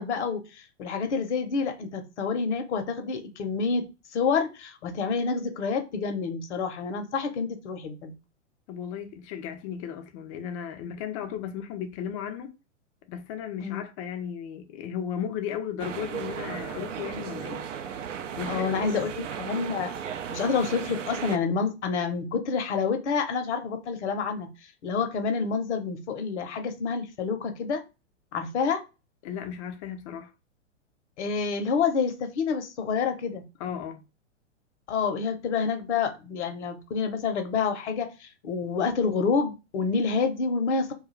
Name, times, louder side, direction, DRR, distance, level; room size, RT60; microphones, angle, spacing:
voice 1, 0.0-3.8 4.1-8.1 13.6-13.8 18.5-19.9 20.3-24.5 24.8-27.8 28.3-28.8 31.2-33.4 34.9-40.9, left 5 dB, 65° left, 0.8 m, -28 dB
voice 2, 8.7-12.5 13.0-17.7 18.4-19.1 29.2-30.3 33.6-34.0, left 8 dB, 30° left, 0.4 m, -35 dB
sound 1, 15.8-21.4, right 8 dB, 80° right, 0.5 m, -35 dB
2.4 x 2.3 x 3.0 m
hypercardioid pair, 110°, 37 cm